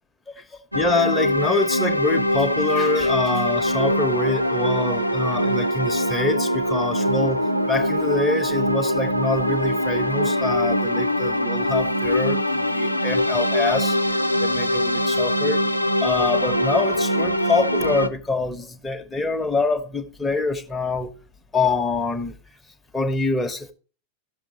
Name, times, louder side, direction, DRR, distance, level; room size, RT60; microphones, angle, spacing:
voice 1, 0.3-15.6 16.0-21.1 21.5-22.3 22.9-23.7, left 3 dB, 10° left, 1.2 m, -25 dB
sound 1, 0.7-18.1, equal, 90° left, 0.7 m, -22 dB
15.5 x 6.9 x 3.0 m
figure-of-eight pair, 90°, 0 cm